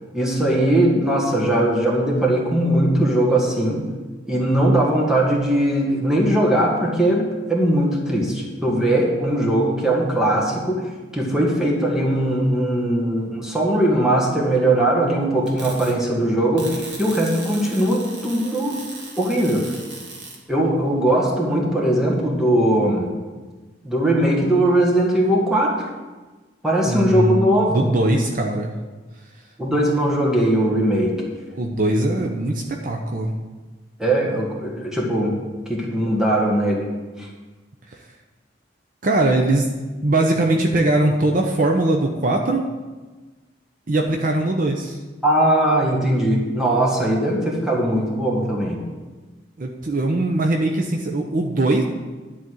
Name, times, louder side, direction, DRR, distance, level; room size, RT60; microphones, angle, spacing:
voice 1, 0.1-3.8 4.3-10.9 11.1-18.8 19.2-19.7 20.5-23.1 23.8-25.7 26.6-27.9 29.6-31.1 34.0-35.4 35.7-36.9 37.2-37.3 45.2-48.8, right 1 dB, 5° right, -3 dB, 1.8 m, -20 dB
sound 1, 15.5-15.9 16.6-20.4, right 3 dB, 85° right, 1.9 m, -37 dB
voice 2, 26.8-28.7 31.5-33.3 37.9-38.0 39.0-39.7 40.0-42.7 43.9-45.0 49.6-51.8, right 2 dB, 50° right, 2 dB, 0.8 m, -21 dB
10.5 x 4.2 x 7.7 m, 1.3 s
head